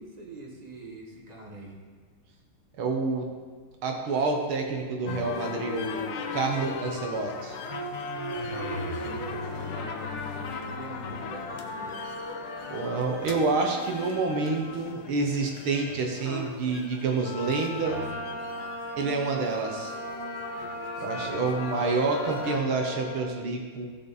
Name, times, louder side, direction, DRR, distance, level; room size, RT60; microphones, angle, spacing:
voice 1, 0.0-1.8 8.5-11.9 20.9-21.5, right 2 dB, 20° right, -2 dB, 1.3 m, -43 dB
voice 2, 2.8-3.3 3.8-7.6 12.7-18.0 19.0-19.9 21.0-23.9, right 3 dB, 70° right, 1 dB, 1.9 m, -28 dB
sound 1, 5.1-22.6, left 5 dB, 65° left, 1.3 m, -38 dB
sound 2, 7.6-15.1 16.2-16.6 17.8-23.2, right 1 dB, 25° left, 0.6 m, -38 dB
14.5 x 7.0 x 4.1 m, 1.5 s
omnidirectional pair, 2.4 m